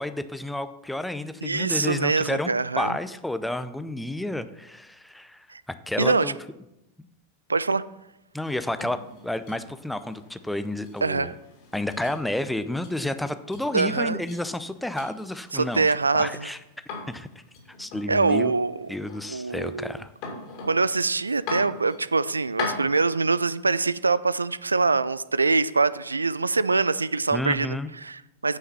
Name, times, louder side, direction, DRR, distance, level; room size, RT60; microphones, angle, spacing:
voice 1, 0.0-2.5 2.8-5.5 5.9-6.3 8.3-11.3 11.7-15.9 16.1-16.6 17.1-17.3 17.8-18.5 18.9-20.1 27.3-27.9, left 1 dB, 5° left, 11 dB, 0.5 m, -30 dB
voice 2, 1.4-3.0 5.5-5.6 6.0-6.3 7.5-7.8 11.0-11.3 13.7-14.2 15.5-16.5 18.1-18.9 19.3-20.0 20.6-28.6, right 4 dB, 80° right, 17 dB, 0.3 m, -24 dB
sound 1, 8.3-23.0, left 4 dB, 45° left, 2.8 m, -41 dB
9.3 x 5.7 x 5.7 m, 0.88 s
figure-of-eight pair, 90°, 0 cm